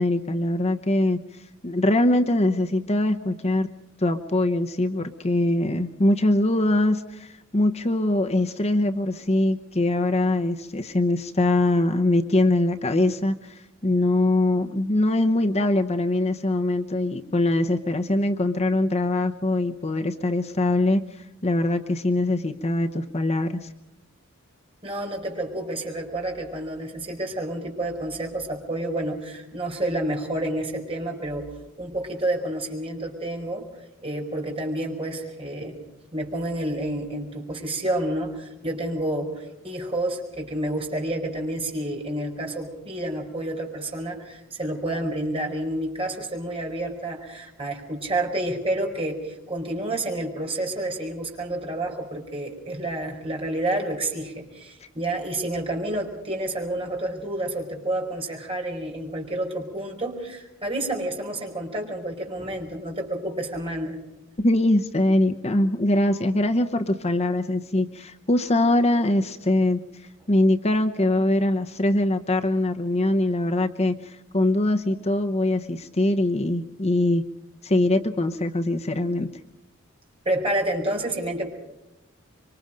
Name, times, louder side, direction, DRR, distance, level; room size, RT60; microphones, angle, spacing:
voice 1, 0.0-3.7 4.0-23.7 64.4-77.2 77.6-79.3, left 1 dB, 30° left, 6 dB, 0.9 m, -23 dB
voice 2, 24.8-31.5 31.8-33.7 34.0-35.8 36.1-64.0 80.2-81.5, right 1 dB, 25° right, 1 dB, 4.9 m, -29 dB
25.5 x 24.5 x 5.2 m, 0.94 s
head